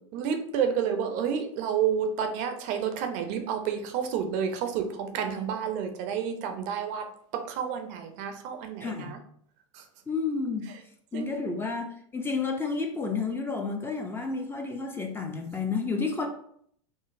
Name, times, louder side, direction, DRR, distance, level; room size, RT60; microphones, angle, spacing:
voice 1, 0.1-7.1 7.3-9.2 9.7-9.8 11.1-11.5, right 7 dB, 45° right, 6 dB, 0.5 m, -30 dB
voice 2, 8.8-9.1 10.1-10.7 11.1-11.9 12.1-16.3, left 4 dB, 15° left, 4 dB, 0.4 m, -30 dB
3.8 x 2.0 x 2.5 m, 0.64 s
hypercardioid pair, 95°, 17 cm